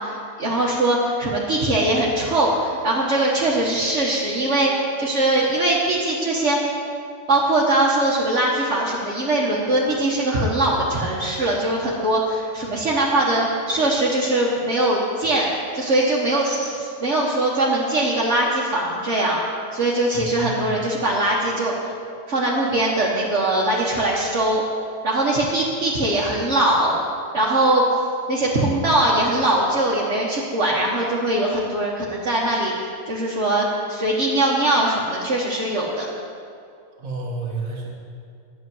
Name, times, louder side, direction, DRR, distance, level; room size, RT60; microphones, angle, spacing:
voice 1, 0.0-6.7 7.3-15.5 15.7-19.4 19.7-21.9 22.3-24.6 25.0-27.0 27.3-27.8 28.3-32.7 33.1-36.1, right 1 dB, 60° right, -6 dB, 1.8 m, -21 dB
voice 2, 20.1-20.8 37.0-37.9, right 3 dB, 85° right, -2 dB, 1.9 m, -30 dB
11.5 x 6.8 x 9.3 m, 2.4 s
omnidirectional pair, 1.4 m